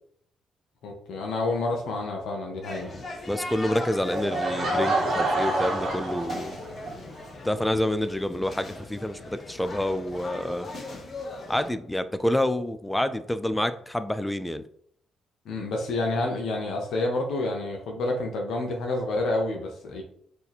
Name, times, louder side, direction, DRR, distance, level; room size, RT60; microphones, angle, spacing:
voice 1, 0.8-2.9 15.4-20.0, left 2 dB, 75° left, 1 dB, 0.7 m, -29 dB
sound 1, 2.6-11.7, left 2 dB, 40° left, 0.8 m, -39 dB
voice 2, 3.3-6.5 7.4-10.7 11.5-14.7, left 1 dB, 5° left, 11 dB, 0.3 m, -28 dB
Laughter / Crowd, 4.1-6.9, right 2 dB, 55° right, 1.0 m, -27 dB
2.8 x 2.6 x 4.0 m, 0.65 s
cardioid pair, 90°, 0 cm